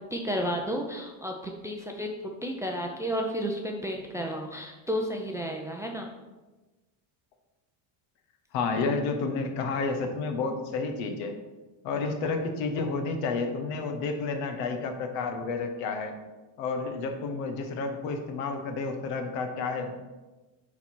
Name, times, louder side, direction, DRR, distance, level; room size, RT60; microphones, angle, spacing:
voice 1, 0.1-6.1, equal, 5° right, 1 dB, 0.4 m, -32 dB
voice 2, 8.5-11.4 11.8-16.1 16.6-19.9, left 4 dB, 80° left, 6 dB, 1.3 m, -30 dB
9.3 x 4.1 x 4.5 m, 1.2 s
cardioid pair, 140°, 47 cm